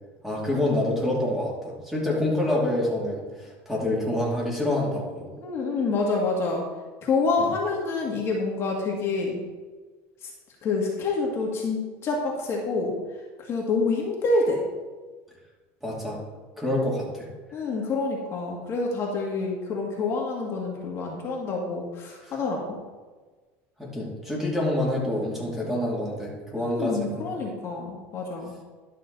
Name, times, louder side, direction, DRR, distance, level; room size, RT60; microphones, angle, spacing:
voice 1, 0.2-5.3 7.4-7.5 15.8-16.2 16.6-17.3 22.2-22.3 23.8-27.0 27.2-27.4, left 1 dB, 5° right, -4 dB, 2.7 m, -27 dB
voice 2, 5.4-6.6 7.0-9.4 10.2-10.3 10.6-12.9 13.4-14.6 17.5-22.8 26.6-28.5, left 3 dB, 35° left, -2 dB, 1.9 m, -27 dB
11.5 x 6.5 x 4.0 m, 1.3 s
supercardioid pair, 130°, 7 cm